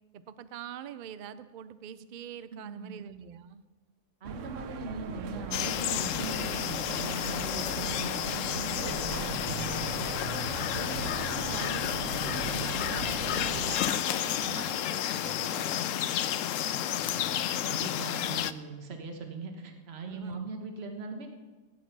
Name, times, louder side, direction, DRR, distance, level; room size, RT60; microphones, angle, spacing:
voice 1, 0.1-3.6 10.8-16.1 20.1-20.5, right 8 dB, 80° right, 13 dB, 0.4 m, -44 dB
voice 2, 2.5-3.0 4.2-10.1 10.7-12.6 17.6-21.3, right 3 dB, 40° right, 4 dB, 1.6 m, -40 dB
sound 1, 4.2-13.8, right 8 dB, 60° right, 0.9 m, -39 dB
sound 2, 5.5-18.5, left 11 dB, 70° left, 0.8 m, -31 dB
Singing, 8.8-15.0, right 1 dB, 25° right, 2.2 m, -57 dB
16.0 x 9.8 x 6.0 m, 1.3 s
omnidirectional pair, 1.7 m